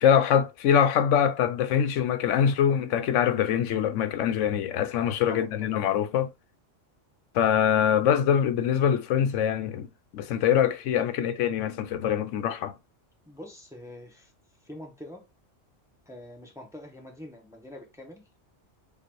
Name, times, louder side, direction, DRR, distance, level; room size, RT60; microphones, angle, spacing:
voice 1, 0.0-6.3 7.3-9.9 10.1-12.7, left 9 dB, 85° left, 0.9 m, -24 dB
voice 2, 5.3-5.8 13.3-14.3 14.6-15.2 16.1-18.2, left 1 dB, 5° right, 0.9 m, -44 dB
6.6 x 2.5 x 3.0 m
omnidirectional pair, 1.2 m